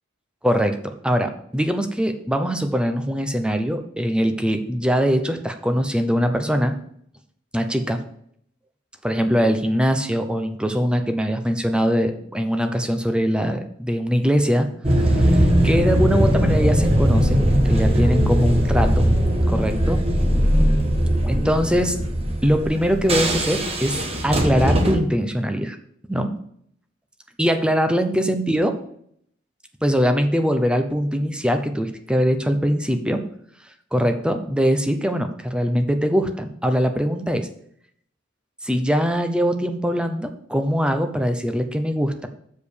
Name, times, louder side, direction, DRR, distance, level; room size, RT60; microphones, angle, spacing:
voice 1, 0.4-6.8 7.5-8.0 9.0-14.7 15.0-19.1 19.5-20.1 21.2-22.0 22.4-25.8 26.1-26.4 27.4-28.8 29.8-33.2 33.9-37.5 38.6-42.3, equal, 5° right, 7 dB, 0.7 m, -22 dB
sound 1, 14.8-25.0, equal, 30° right, 1.2 m, -19 dB
7.2 x 5.0 x 6.5 m, 0.67 s
head